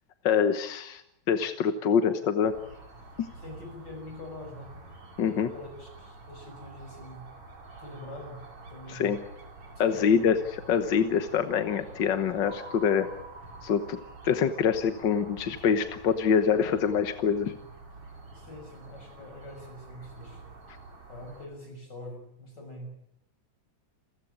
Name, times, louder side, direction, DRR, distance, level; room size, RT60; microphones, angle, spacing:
voice 1, 0.2-1.0 1.3-2.5 3.2-3.3 5.2-5.5 8.9-9.2 9.8-10.4 10.7-13.1 13.6-14.0 14.2-17.5, left 7 dB, 55° left, 9 dB, 1.3 m, -25 dB
sound 1, 2.4-21.5, right 3 dB, 50° right, 4.8 m, -48 dB
voice 2, 3.4-4.7 5.5-7.2 7.8-9.1 9.8-10.3 18.3-20.4 21.1-22.9, left 1 dB, 35° left, 4 dB, 6.7 m, -44 dB
sound 2, 12.4-16.7, right 2 dB, 75° right, 5.2 m, -50 dB
29.0 x 15.0 x 8.8 m, 0.74 s
omnidirectional pair, 3.3 m